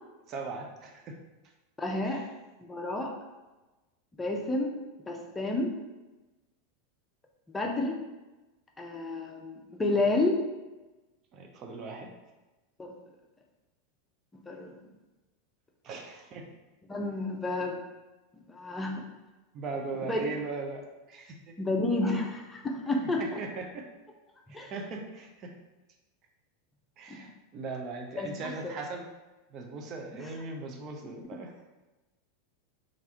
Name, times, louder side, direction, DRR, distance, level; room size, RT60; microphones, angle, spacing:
voice 1, 0.3-1.2 2.0-2.3 11.3-12.1 15.8-16.5 19.5-21.5 22.0-22.2 23.2-23.9 24.5-25.5 27.0-29.0 29.5-31.5, right 3 dB, 40° right, 2 dB, 0.6 m, -39 dB
voice 2, 1.8-2.2 2.6-3.1 4.2-4.7 5.1-5.8 7.5-8.0 8.8-10.4 12.8-12.9 14.5-14.7 16.9-17.8 18.5-19.0 20.1-20.2 21.6-23.4 24.5-24.7 27.1-27.2 28.1-28.5 30.1-30.3, left 2 dB, 15° left, 1 dB, 0.6 m, -30 dB
3.4 x 2.5 x 4.3 m, 1.1 s
figure-of-eight pair, 85°, 0 cm